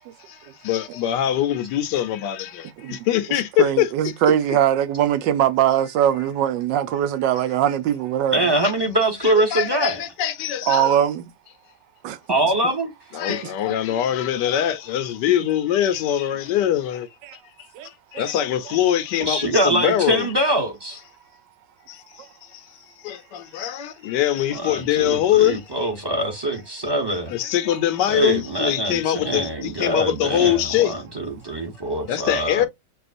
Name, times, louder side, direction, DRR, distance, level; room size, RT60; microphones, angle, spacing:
voice 1, 0.3-3.9 8.6-8.7 9.2-11.0 13.1-17.1 17.8-20.3 21.9-25.8 27.3-30.9 32.1-32.7, left 11 dB, 80° left, 1.2 m, -23 dB
voice 2, 2.8-8.5 10.7-11.3 12.0-12.2 17.2-17.4 17.7-17.9 18.1-18.3 22.2-22.3 27.7-27.8, right 10 dB, 90° right, 1.3 m, -22 dB
voice 3, 8.3-10.0 12.3-12.9 19.2-21.0 24.5-27.3 28.1-32.7, right 1 dB, 20° right, 0.8 m, -23 dB
6.7 x 2.4 x 2.5 m
omnidirectional pair, 1.9 m